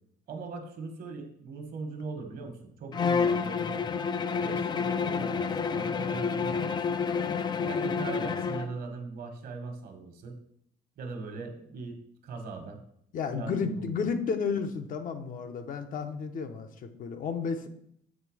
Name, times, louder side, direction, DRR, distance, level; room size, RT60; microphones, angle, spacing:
voice 1, 0.3-3.8 4.3-7.0 7.6-10.4 11.0-12.0 12.2-12.8 13.3-14.0, right 3 dB, 60° right, 5 dB, 1.4 m, -40 dB
Bowed string instrument, 2.9-8.7, left 5 dB, 25° left, 0.4 m, -29 dB
voice 2, 13.1-17.7, left 5 dB, 55° left, 7 dB, 0.8 m, -32 dB
7.4 x 3.3 x 4.8 m, 0.71 s
cardioid pair, 110°, 17 cm